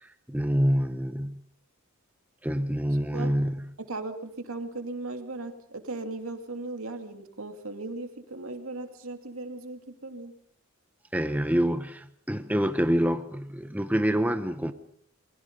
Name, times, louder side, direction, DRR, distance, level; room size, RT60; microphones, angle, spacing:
voice 1, 0.0-1.4 2.4-3.6 11.1-14.7, equal, 5° right, 0.8 m, -26 dB
voice 2, 3.1-3.5 3.8-10.3, right 2 dB, 65° right, 2.7 m, -37 dB
28.5 x 22.0 x 5.4 m
head